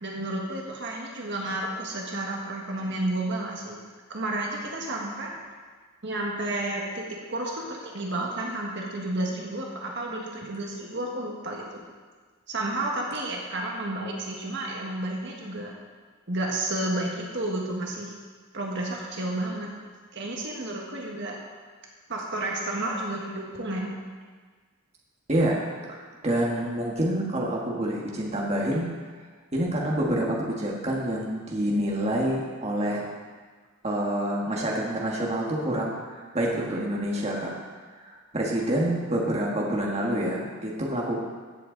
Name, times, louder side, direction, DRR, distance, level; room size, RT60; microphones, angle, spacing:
voice 1, 0.0-3.8 4.1-5.3 6.0-11.8 12.5-15.7 16.3-18.1 18.5-19.7 20.1-21.4 22.1-23.9, right 1 dB, 55° right, -1 dB, 1.6 m, -31 dB
voice 2, 25.3-25.6 25.9-28.9 29.5-33.0 33.8-37.5 38.0-41.2, right 1 dB, 30° right, -3 dB, 1.6 m, -27 dB
16.0 x 7.8 x 3.9 m, 1.5 s
head